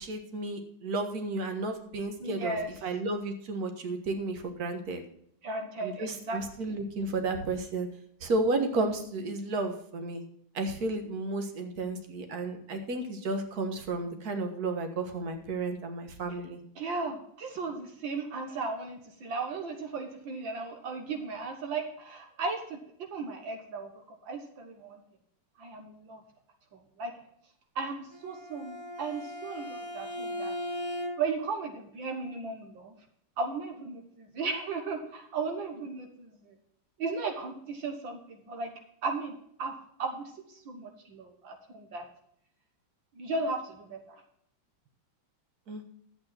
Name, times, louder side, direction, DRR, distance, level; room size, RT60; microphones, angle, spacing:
voice 1, 0.0-2.6 2.8-5.0 5.8-7.9 8.2-10.2 10.5-16.6 45.7-45.8, right 2 dB, 50° right, 6 dB, 1.8 m, -32 dB
voice 2, 2.2-2.7 5.4-6.4 6.7-6.8 16.3-16.4 16.8-25.0 25.6-26.2 26.7-27.1 27.8-30.5 31.2-32.9 33.4-36.5 37.0-38.7 39.0-39.3 39.6-39.7 40.0-42.1 43.2-44.2, right 4 dB, 75° right, 4 dB, 2.0 m, -36 dB
Bowed string instrument, 28.1-31.5, left 1 dB, 35° right, 0.4 m, -38 dB
11.5 x 8.4 x 4.3 m, 0.69 s
omnidirectional pair, 2.2 m